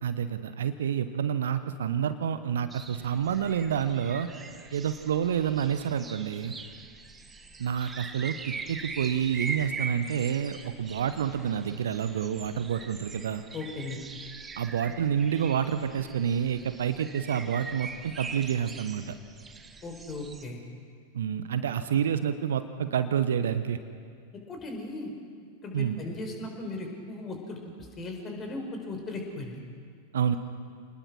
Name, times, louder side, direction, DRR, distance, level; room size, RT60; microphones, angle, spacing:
voice 1, 0.0-4.3 4.7-6.5 7.6-13.4 14.6-19.1 21.1-23.8 25.7-26.0 30.1-30.3, right 8 dB, 60° right, 11 dB, 1.0 m, -28 dB
sound 1, 2.7-20.4, right 4 dB, 15° right, 1.3 m, -42 dB
voice 2, 13.5-14.0 19.8-20.6 24.5-25.1 25.6-29.6, left 2 dB, 25° left, 3 dB, 4.8 m, -37 dB
28.0 x 20.0 x 6.3 m, 2.1 s
figure-of-eight pair, 90°, 0 cm